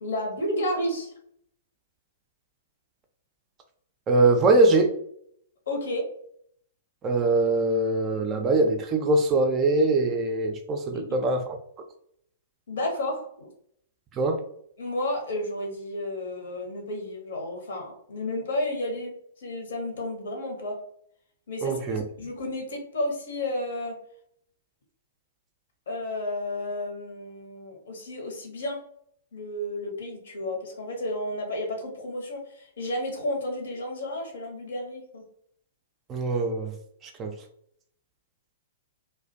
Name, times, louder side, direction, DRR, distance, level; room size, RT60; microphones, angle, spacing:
voice 1, 0.0-1.1 5.7-6.1 10.9-11.1 12.7-13.5 14.8-20.8 21.5-21.7 22.2-24.0 25.9-28.8 29.3-35.2, left 1 dB, 60° left, 2 dB, 0.8 m, -32 dB
voice 2, 4.1-4.9 7.0-11.6 14.2-14.4 21.6-22.0 36.1-36.7 37.0-37.3, right 2 dB, 25° right, 4 dB, 0.3 m, -22 dB
2.4 x 2.1 x 2.5 m, 0.67 s
figure-of-eight pair, 110°, 0 cm